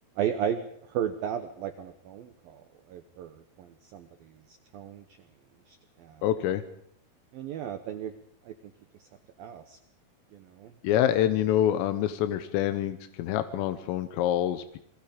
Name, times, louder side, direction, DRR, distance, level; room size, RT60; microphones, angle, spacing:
voice 1, 0.2-5.1 5.7-6.2 7.3-8.1 8.4-8.7 9.0-9.1 9.4-9.8 10.3-10.7, right 9 dB, 85° right, 8 dB, 2.1 m, -35 dB
voice 2, 6.2-6.6 10.8-14.8, left 11 dB, 90° left, 10 dB, 3.7 m, -26 dB
28.0 x 22.0 x 5.2 m, 0.68 s
omnidirectional pair, 5.8 m